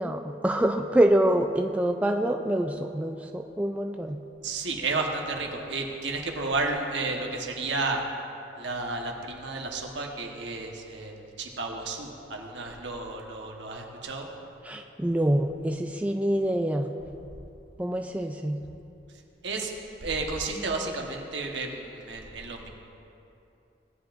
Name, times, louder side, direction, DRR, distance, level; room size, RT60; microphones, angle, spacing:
voice 1, 0.0-4.2 14.6-16.9 17.8-18.6, right 1 dB, 10° right, 3 dB, 0.3 m, -26 dB
voice 2, 4.4-8.0 8.6-14.3 19.4-19.7 20.0-22.7, right 3 dB, 80° right, 1 dB, 1.2 m, -32 dB
17.5 x 10.0 x 2.6 m, 2.8 s
head